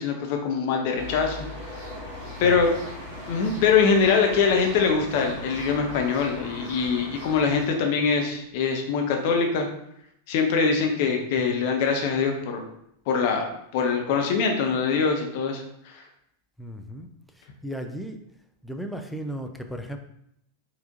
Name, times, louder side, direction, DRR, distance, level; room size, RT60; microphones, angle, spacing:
voice 1, 0.0-1.4 2.4-2.7 3.3-9.7 10.3-12.6 13.1-13.5 13.7-16.0, left 5 dB, 50° left, 3 dB, 0.7 m, -23 dB
sound 1, 1.0-7.7, left 1 dB, 40° right, 1.4 m, -38 dB
voice 2, 16.6-17.1 17.4-18.2 18.6-20.0, equal, ahead, 4 dB, 0.5 m, -35 dB
4.4 x 4.2 x 2.6 m, 0.75 s
figure-of-eight pair, 90°, 0 cm